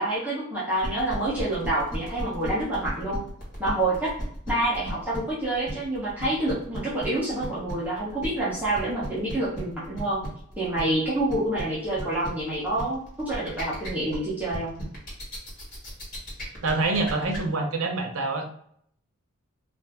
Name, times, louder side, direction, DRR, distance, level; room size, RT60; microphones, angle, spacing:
voice 1, 0.0-3.2 3.6-4.1 4.5-10.2 10.6-14.7, right 1 dB, 5° right, -8 dB, 0.7 m, -27 dB
sound 1, 0.8-17.4, equal, 40° left, 1.4 m, -37 dB
voice 2, 16.6-18.5, right 3 dB, 80° right, 4 dB, 0.6 m, -26 dB
2.5 x 2.5 x 3.3 m, 0.65 s
head